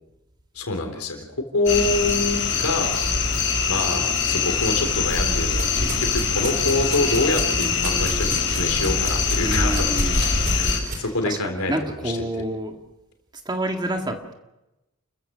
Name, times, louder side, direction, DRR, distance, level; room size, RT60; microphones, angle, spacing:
voice 1, 0.6-3.0 3.7-9.8 10.1-12.0, left 2 dB, 90° left, 4 dB, 3.6 m, -26 dB
sound 1, 1.7-10.8, left 5 dB, 55° left, 5.7 m, -23 dB
sound 2, 4.6-11.0, right 2 dB, 45° right, 4.3 m, -36 dB
voice 2, 9.4-10.3 10.8-12.8 13.5-14.3, right 1 dB, 20° right, 4 dB, 2.0 m, -29 dB
29.5 x 14.5 x 6.7 m, 0.96 s
head